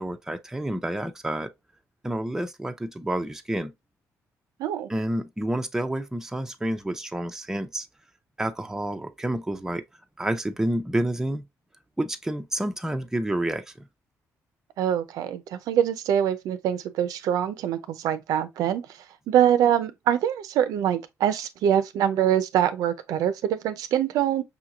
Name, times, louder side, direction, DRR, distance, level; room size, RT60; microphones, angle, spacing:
voice 1, 0.0-1.5 2.0-3.7 4.9-7.9 8.4-9.8 10.2-11.5 12.0-13.9, right 1 dB, 10° right, 0.5 m, -29 dB
voice 2, 14.8-18.8 19.3-24.4, right 10 dB, 80° right, 0.5 m, -24 dB
5.5 x 2.9 x 2.3 m
cardioid pair, 95°, 6 cm